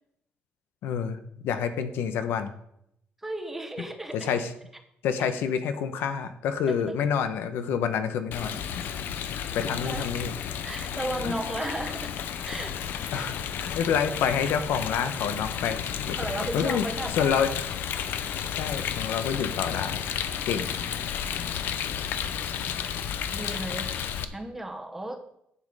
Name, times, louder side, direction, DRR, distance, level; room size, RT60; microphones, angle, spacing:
voice 1, 0.8-2.5 4.1-4.5 5.0-9.0 9.3-10.3 11.2-11.3 13.1-16.2 16.5-16.9 17.2-17.7 18.5-20.0 20.5-20.7, left 7 dB, 85° left, 10 dB, 1.0 m, -28 dB
voice 2, 3.2-4.3 5.2-5.3 6.7-6.8 8.9-9.0 9.8-10.1 10.6-12.1 12.4-12.8 13.1-13.3 16.2-17.5 23.3-23.9 24.3-25.2, right 1 dB, 10° right, 6 dB, 1.0 m, -34 dB
Rain, 8.3-24.2, left 8 dB, 65° left, 0.8 m, -32 dB
11.5 x 7.6 x 4.9 m, 0.75 s
cardioid pair, 170°, 4 cm